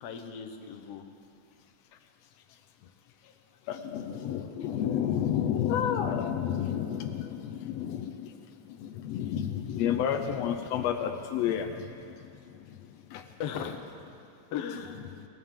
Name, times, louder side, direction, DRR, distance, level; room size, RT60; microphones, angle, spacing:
voice 1, 0.0-1.1 13.4-13.8 14.5-15.1, left 7 dB, 65° left, 5 dB, 1.6 m, -37 dB
voice 2, 3.7-8.3 8.8-11.7 13.1-13.2, left 9 dB, 85° left, 5 dB, 1.4 m, -30 dB
19.5 x 18.5 x 3.7 m, 2.8 s
omnidirectional pair, 3.7 m